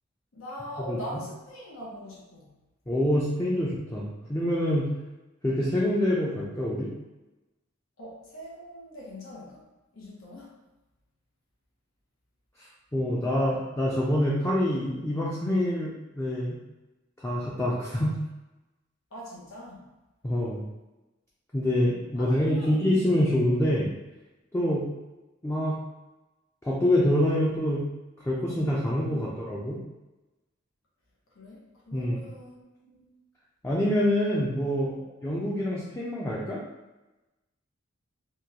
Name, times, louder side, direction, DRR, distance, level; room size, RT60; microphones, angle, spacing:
voice 1, 0.3-2.5 8.0-9.6 9.9-10.5 19.1-19.8 22.2-22.8 23.2-23.5 24.6-24.8 29.1-29.8 31.3-33.1 35.0-35.1, equal, 90° left, -5 dB, 0.8 m, -42 dB
voice 2, 2.9-4.9 5.4-6.9 12.6-16.6 17.2-18.2 20.2-20.6 21.5-23.9 24.5-24.8 25.4-25.8 26.6-27.8 28.2-29.8 31.9-32.2 33.6-34.9 35.2-36.6, left 1 dB, 15° left, -5 dB, 0.4 m, -26 dB
3.6 x 2.2 x 2.8 m, 1.1 s
head